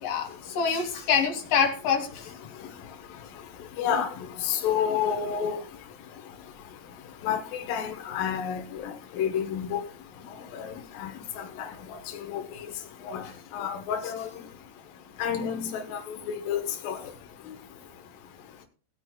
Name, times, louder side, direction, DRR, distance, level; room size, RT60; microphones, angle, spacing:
voice 1, 0.0-2.3 13.2-13.3 13.6-13.7 17.4-17.6, left 6 dB, 50° left, 2 dB, 3.1 m, -26 dB
voice 2, 3.8-4.1 4.4-5.6 7.2-9.8 10.5-10.7 11.0-11.1 11.4-11.7 12.3-12.4 13.0-13.2 13.5-14.3 15.2-17.0, left 8 dB, 85° left, 5 dB, 1.9 m, -29 dB
20.0 x 9.3 x 2.3 m, 0.40 s
omnidirectional pair, 5.9 m